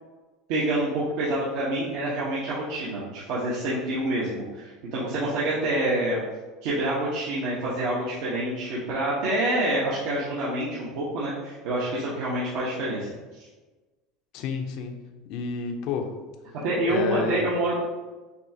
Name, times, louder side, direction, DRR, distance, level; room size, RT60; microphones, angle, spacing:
voice 1, 0.5-6.2 6.6-13.5 16.6-17.8, right 1 dB, 65° right, -8 dB, 1.0 m, -27 dB
voice 2, 14.3-15.0 15.3-16.1 16.9-17.4, left 5 dB, 55° left, 4 dB, 0.5 m, -30 dB
6.5 x 2.4 x 2.8 m, 1.2 s
supercardioid pair, 140°, 0 cm